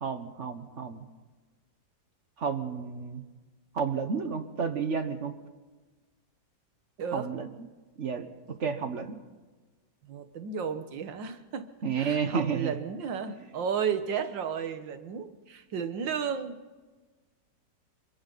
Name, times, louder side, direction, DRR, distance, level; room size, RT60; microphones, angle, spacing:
voice 1, 0.0-1.0 2.4-3.2 3.7-5.3 7.1-7.5 8.0-8.3 8.6-9.2 11.8-12.7, right 6 dB, 45° right, 8 dB, 1.4 m, -31 dB
voice 2, 10.0-11.7 11.9-16.6, right 7 dB, 85° right, 9 dB, 2.0 m, -33 dB
26.5 x 24.0 x 4.1 m, 1.3 s
omnidirectional pair, 2.0 m